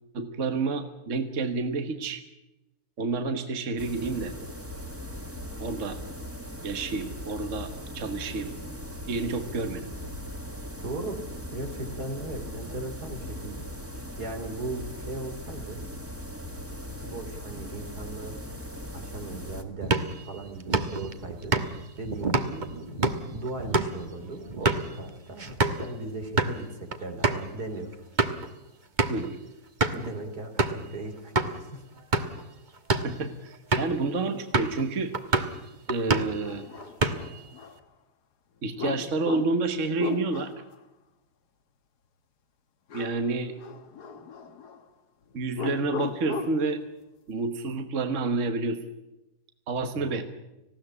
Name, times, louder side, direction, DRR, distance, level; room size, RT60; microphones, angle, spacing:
voice 1, 0.1-2.2 3.0-4.3 5.6-6.0 6.6-8.5 9.1-9.9 29.1-29.4 33.0-35.1 35.9-36.7 38.6-40.5 42.9-43.5 45.3-46.8 47.3-48.8 49.7-50.2, right 3 dB, 55° right, 8 dB, 1.6 m, -29 dB
sound 1, 3.8-19.6, equal, 10° right, 2.0 m, -39 dB
voice 2, 10.8-11.2 11.5-13.6 14.0-15.8 17.0-18.4 18.9-19.9 20.2-28.0 29.9-31.8 33.8-34.1 49.9-50.2, right 2 dB, 80° right, 6 dB, 3.6 m, -38 dB
sound 2, 19.8-25.9 26.2-26.6 26.9-27.0 27.2-27.4 27.9-28.5 29.0-29.3 29.8-30.1 30.6-30.9 31.4-31.5 32.0-32.4 32.8-33.2 33.7-34.0 34.5-34.8 35.1-35.6 35.9-36.4 36.8-37.4, right 3 dB, 30° right, 1.3 m, -27 dB
sound 3, 35.7-35.8 36.4-37.8 38.8-40.7 42.9-43.3 43.6-44.8 45.5-46.7, left 5 dB, 90° left, 1.9 m, -37 dB
19.5 x 16.0 x 9.7 m, 0.97 s
omnidirectional pair, 1.7 m